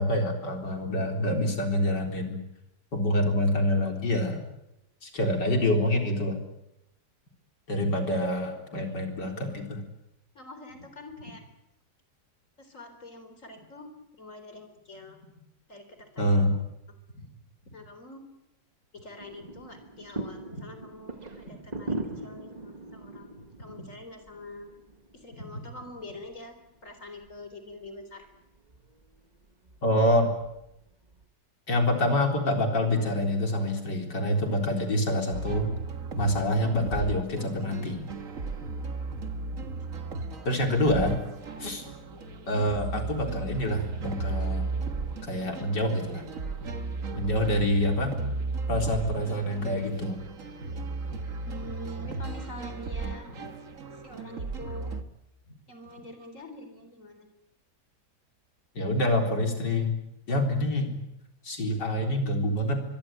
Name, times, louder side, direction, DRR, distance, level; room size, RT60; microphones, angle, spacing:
voice 1, 0.0-2.4 2.9-4.4 5.0-6.4 7.7-9.8 16.2-16.6 29.8-30.3 31.7-35.7 36.2-38.0 40.4-41.2 41.6-41.8 42.5-44.7 45.3-46.3 47.2-48.2 48.7-50.2 58.7-59.9 60.3-61.0 61.4-62.8, left 1 dB, 85° left, 4 dB, 4.7 m, -26 dB
voice 2, 10.3-11.5 12.6-15.4 15.7-16.3 16.9-17.3 17.6-18.3 18.9-24.7 25.1-26.6 26.8-28.3 45.6-45.7 51.5-53.5 53.9-55.1 55.4-57.3, left 1 dB, 45° left, 8 dB, 4.3 m, -45 dB
sound 1, 19.2-31.3, right 2 dB, 25° right, 1.6 m, -42 dB
sound 2, 35.3-55.0, right 3 dB, 50° right, 1.9 m, -35 dB
24.5 x 23.0 x 9.2 m, 0.86 s
omnidirectional pair, 1.8 m